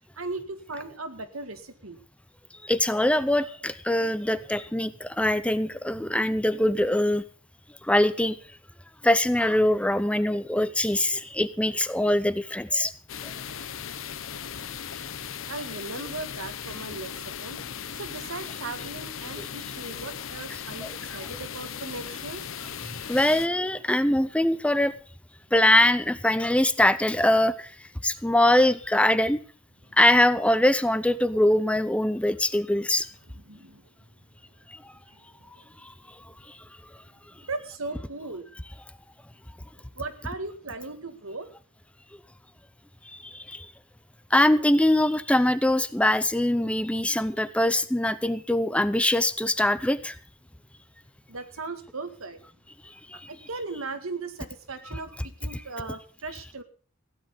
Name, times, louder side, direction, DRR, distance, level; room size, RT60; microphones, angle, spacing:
voice 1, 0.2-2.0 15.5-17.1 17.4-17.6 17.9-22.4 33.3-33.8 35.4-35.7 37.4-38.5 40.0-41.5 51.3-52.4 53.3-56.6, right 3 dB, 90° right, 8 dB, 1.9 m, -37 dB
voice 2, 2.6-7.2 7.8-8.4 9.0-12.9 13.2-13.3 19.4-19.5 20.8-20.9 22.8-24.9 25.5-27.7 28.0-29.4 30.0-33.1 34.7-34.8 43.1-43.7 44.3-50.1 53.1-53.3 54.9-55.0 55.5-55.6, left 1 dB, 5° left, 14 dB, 0.6 m, -23 dB
sound 1, 13.1-23.5, left 8 dB, 75° left, 0.9 m, -37 dB
16.0 x 10.5 x 5.4 m, 0.41 s
head